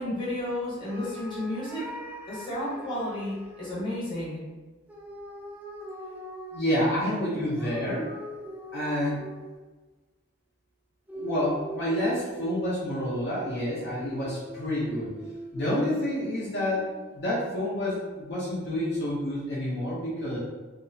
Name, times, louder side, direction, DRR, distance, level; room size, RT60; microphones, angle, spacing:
voice 1, 0.0-1.8 2.3-4.4, left 1 dB, 25° left, -8 dB, 1.0 m, -32 dB
sound 1, 0.9-3.8 4.9-9.7 11.1-17.2, right 1 dB, 10° right, 0.3 m, -41 dB
voice 2, 6.5-8.1 8.7-9.2 11.1-15.1 15.5-16.9 17.1-20.4, left 1 dB, 55° left, -8 dB, 0.6 m, -28 dB
2.8 x 2.0 x 2.6 m, 1.3 s
head